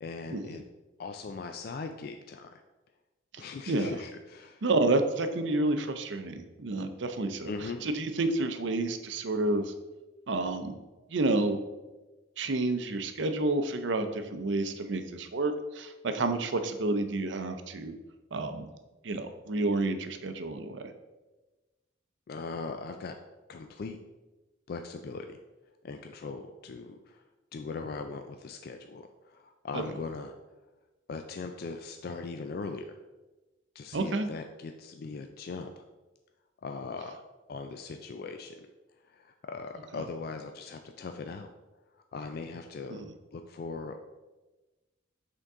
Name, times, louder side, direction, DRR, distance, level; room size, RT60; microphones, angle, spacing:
voice 1, 0.0-0.6 1.0-2.6 3.4-4.6 7.5-7.9 22.3-23.2 23.5-24.0 24.7-25.4 25.8-27.2 27.5-30.3 31.1-33.0 33.7-35.8 36.6-37.2 37.5-38.7 39.0-41.5 41.9-43.0 43.3-44.0, left 4 dB, 55° left, 6 dB, 0.3 m, -40 dB
voice 2, 3.3-3.9 4.6-7.5 7.8-9.6 10.3-10.8 11.1-11.6 12.4-17.9 18.3-18.7 19.0-20.9 29.7-29.8 33.9-34.3 42.9-43.0, right 2 dB, 70° right, 8 dB, 0.6 m, -30 dB
8.0 x 3.7 x 3.6 m, 1.2 s
head